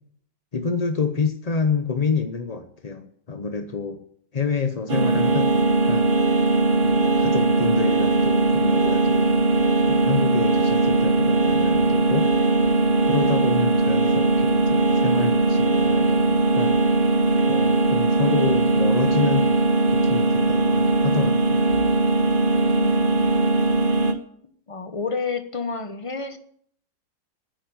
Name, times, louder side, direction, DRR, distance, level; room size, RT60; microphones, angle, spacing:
voice 1, 0.5-4.0 4.3-6.1 6.8-9.4 9.9-12.3 13.1-16.8 17.5-19.5 19.9-21.6, left 5 dB, 55° left, 8 dB, 0.4 m, -28 dB
sound 1, 4.9-24.1, right 3 dB, 35° right, 1.1 m, -20 dB
voice 2, 24.7-26.4, left 4 dB, 25° left, 9 dB, 0.8 m, -30 dB
9.4 x 9.1 x 9.4 m, 0.65 s
omnidirectional pair, 2.0 m